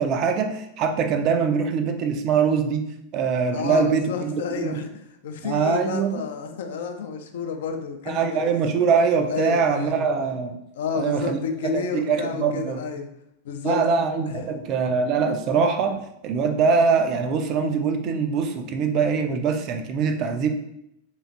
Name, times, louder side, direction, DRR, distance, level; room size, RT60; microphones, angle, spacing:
voice 1, 0.0-2.9 3.1-4.8 5.4-6.1 8.1-10.5 10.9-11.4 11.7-12.8 13.6-20.5, right 5 dB, 40° right, 6 dB, 0.3 m, -23 dB
voice 2, 3.5-4.9 5.2-8.4 9.3-10.1 10.7-13.1 13.4-13.8 14.3-14.6, left 5 dB, 60° left, 6 dB, 0.4 m, -30 dB
3.1 x 3.0 x 2.5 m, 0.78 s
figure-of-eight pair, 90°, 0 cm